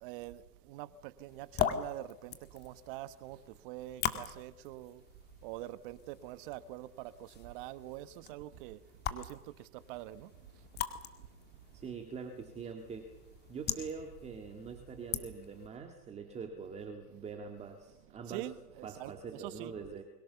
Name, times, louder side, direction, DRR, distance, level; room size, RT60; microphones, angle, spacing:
voice 1, 0.0-5.0 5.4-8.8 9.1-10.3 18.1-19.8, right 15 dB, 35° right, 1.2 m, -45 dB
sound 1, 1.3-15.7, left 9 dB, 20° left, 2.1 m, -42 dB
voice 2, 11.7-13.1 13.5-18.5 18.8-20.0, right 5 dB, 15° right, 2.2 m, -44 dB
29.5 x 23.5 x 7.0 m
hypercardioid pair, 135°, 47 cm